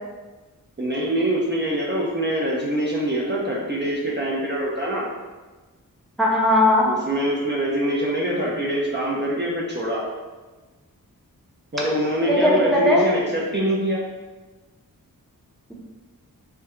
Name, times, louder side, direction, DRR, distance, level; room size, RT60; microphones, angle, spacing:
voice 1, 0.8-5.1 6.9-10.0 11.7-14.0, right 1 dB, 30° right, -5 dB, 0.7 m, -24 dB
voice 2, 6.2-6.9 12.3-13.1, left 1 dB, ahead, -4 dB, 0.8 m, -18 dB
3.4 x 2.3 x 3.1 m, 1.3 s
cardioid pair, 50°, 36 cm